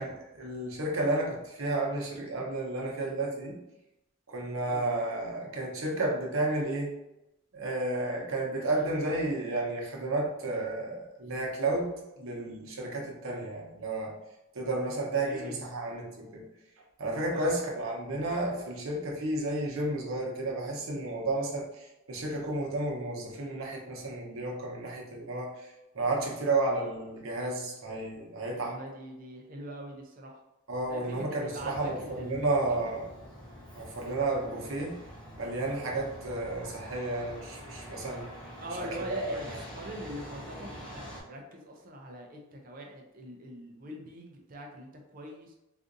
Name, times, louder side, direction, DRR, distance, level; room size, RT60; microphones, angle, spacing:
voice 1, 0.0-3.6 4.3-6.9 7.5-14.1 14.5-16.4 17.0-28.8 30.7-33.1 33.7-35.0 35.4-38.3 38.8-39.4, right 2 dB, 85° right, -1 dB, 0.8 m, -32 dB
voice 2, 15.2-15.6 17.3-17.6 28.6-30.4 30.9-32.8 34.3-34.7 38.6-45.5, equal, 40° right, 1 dB, 0.5 m, -43 dB
Truck, 31.5-41.2, equal, 5° left, 0.8 m, -46 dB
3.7 x 2.5 x 2.5 m, 0.92 s
head